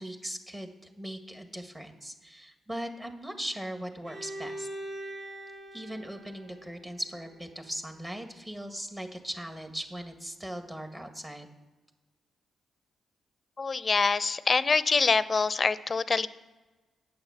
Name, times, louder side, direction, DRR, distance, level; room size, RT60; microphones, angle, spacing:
voice 1, 0.0-4.7 5.7-11.5, right 1 dB, 20° right, 5 dB, 1.7 m, -39 dB
Bowed string instrument, 4.0-7.9, right 1 dB, 65° right, 3.4 m, -43 dB
voice 2, 13.6-16.3, left 4 dB, 45° left, 16 dB, 0.5 m, -25 dB
8.8 x 7.9 x 7.1 m, 1.2 s
supercardioid pair, 50°, 0 cm